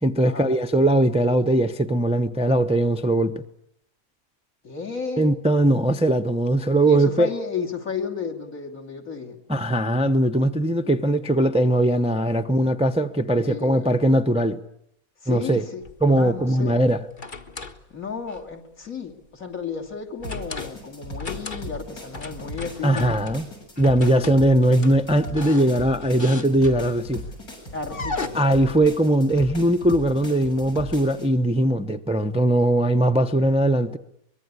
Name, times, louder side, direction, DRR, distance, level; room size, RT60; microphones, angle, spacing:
voice 1, 0.0-3.4 5.2-7.3 9.5-14.6 15.3-15.6 16.0-17.0 22.8-23.5 23.8-27.2 28.3-34.0, right 1 dB, 5° right, 0.8 m, -20 dB
voice 2, 4.6-5.3 6.9-9.4 12.4-12.5 13.3-13.9 15.2-16.8 17.9-23.2 24.0-24.3 27.7-28.8, left 5 dB, 60° left, 3.4 m, -33 dB
sound 1, 15.8-16.2 16.9-17.8 18.3-18.5 20.2-20.8 21.1-21.8 22.1-23.4 23.8-27.1 27.9-28.3, left 3 dB, 35° left, 1.6 m, -36 dB
sound 2, 20.2-31.3, equal, 80° left, 7.9 m, -38 dB
24.5 x 23.0 x 9.8 m
omnidirectional pair, 1.6 m